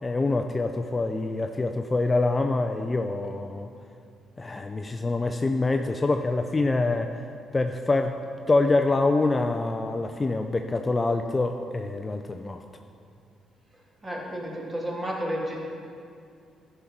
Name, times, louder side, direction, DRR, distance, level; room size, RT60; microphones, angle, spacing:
voice 1, 0.0-3.7 4.4-7.2 7.5-8.2 8.5-12.6, left 3 dB, 25° left, 5 dB, 0.4 m, -25 dB
voice 2, 14.0-15.6, equal, 25° right, -3 dB, 2.2 m, -31 dB
12.0 x 5.5 x 4.6 m, 2.4 s
cardioid pair, 90°, 0 cm